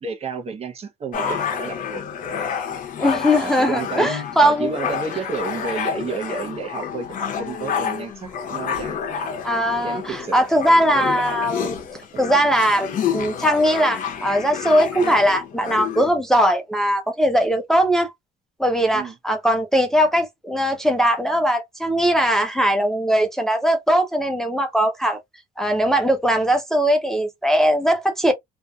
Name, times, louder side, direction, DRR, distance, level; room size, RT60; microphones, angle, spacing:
voice 1, 0.0-2.0 3.0-3.1 3.4-4.1 4.4-9.0 9.8-10.4 12.1-12.2 18.9-19.2, right 5 dB, 35° right, 0.7 m, -31 dB
sound 1, 1.1-16.1, left 7 dB, 50° left, 0.7 m, -29 dB
voice 2, 3.0-4.7 9.4-11.8 12.2-18.1 18.6-25.2 25.6-28.3, equal, 5° left, 0.5 m, -20 dB
2.6 x 2.4 x 2.2 m
cardioid pair, 110°, 17 cm